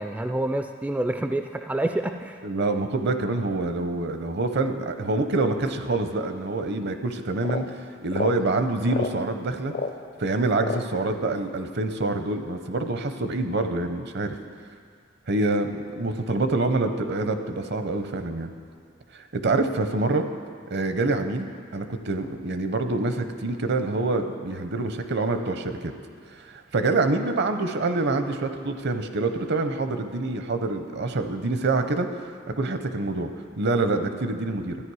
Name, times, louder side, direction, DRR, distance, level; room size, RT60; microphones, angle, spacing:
voice 1, 0.0-2.4, right 1 dB, 10° right, 6 dB, 0.3 m, -27 dB
voice 2, 2.4-9.7 10.2-14.4 15.3-18.5 19.1-20.3 20.7-25.9 26.3-32.1 32.5-33.3 33.6-34.8, right 2 dB, 60° right, 8 dB, 0.7 m, -26 dB
sound 1, 7.4-7.7 8.1-8.4 8.9-9.2 9.7-10.0 10.6-10.9, left 4 dB, 50° left, 0.6 m, -30 dB
13.0 x 9.9 x 4.8 m, 2.1 s
head